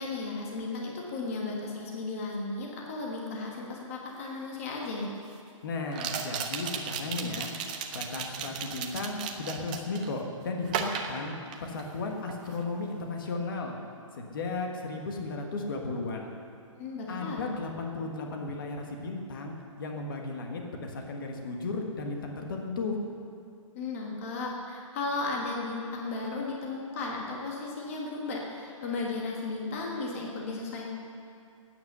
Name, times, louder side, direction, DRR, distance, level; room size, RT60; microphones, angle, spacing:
voice 1, 0.0-5.1 16.8-17.5 23.7-30.9, left 3 dB, 25° left, -2 dB, 1.5 m, -35 dB
sound 1, 4.2-4.3 5.9-10.1 10.7-12.0 12.3-12.6, right 7 dB, 15° right, 0.5 m, -35 dB
voice 2, 5.6-7.5 7.9-11.3 11.6-13.7 14.1-16.3 17.1-23.0, left 3 dB, 40° left, 2 dB, 1.5 m, -35 dB
15.0 x 9.4 x 6.8 m, 2.4 s
hypercardioid pair, 180°, 17 cm